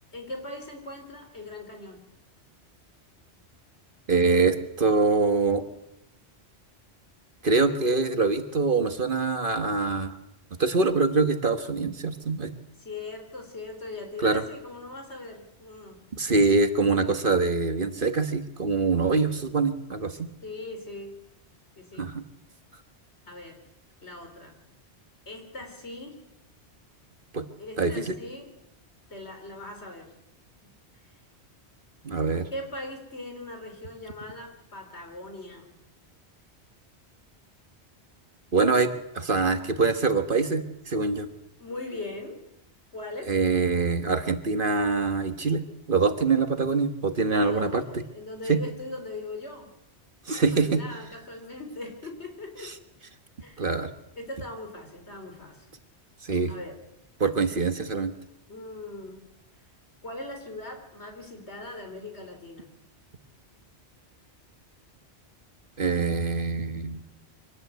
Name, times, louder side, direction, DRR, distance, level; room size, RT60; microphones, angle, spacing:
voice 1, 0.1-2.1 12.8-16.0 20.4-21.2 21.8-22.1 23.3-23.6 24.0-24.6 25.3-26.2 27.6-28.5 29.1-30.1 30.6-30.7 31.0-31.2 32.5-35.7 41.6-42.4 42.9-43.3 47.3-49.7 50.3-52.8 53.4-53.7 54.2-55.7 56.5-56.8 58.5-59.2 60.0-62.7, left 2 dB, 75° left, 4 dB, 4.3 m, -40 dB
voice 2, 4.1-5.6 7.4-10.1 10.6-12.5 14.2-14.4 16.1-20.3 22.0-22.2 27.3-27.4 27.8-28.1 32.0-32.5 38.5-38.9 39.1-41.3 43.3-47.8 48.5-48.6 50.3-50.8 53.6-53.9 56.2-56.5 57.2-58.1 65.8-67.0, right 4 dB, 50° right, 8 dB, 1.5 m, -24 dB
24.5 x 18.0 x 8.1 m, 0.83 s
omnidirectional pair, 1.1 m